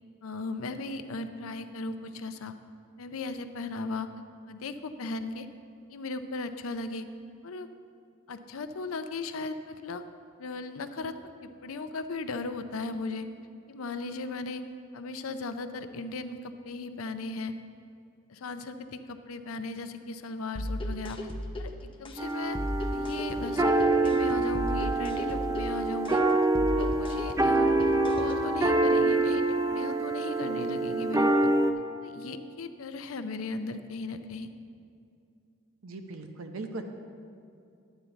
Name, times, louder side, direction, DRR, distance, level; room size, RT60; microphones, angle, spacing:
voice 1, 0.2-2.5 3.0-4.1 4.5-5.5 5.9-7.1 7.4-7.7 8.3-10.0 10.4-11.1 11.4-13.3 13.7-14.6 14.9-17.5 18.3-21.3 21.6-22.6 22.9-26.2 26.7-27.7 28.1-31.5 32.0-34.5, left 3 dB, 80° left, 9 dB, 0.5 m, -37 dB
sound 1, 20.6-28.6, left 1 dB, 25° left, 0.7 m, -36 dB
sound 2, 22.2-31.7, right 2 dB, 15° right, 0.4 m, -26 dB
voice 2, 35.8-36.8, right 3 dB, 70° right, 6 dB, 0.8 m, -39 dB
11.0 x 9.0 x 3.9 m, 2.5 s
head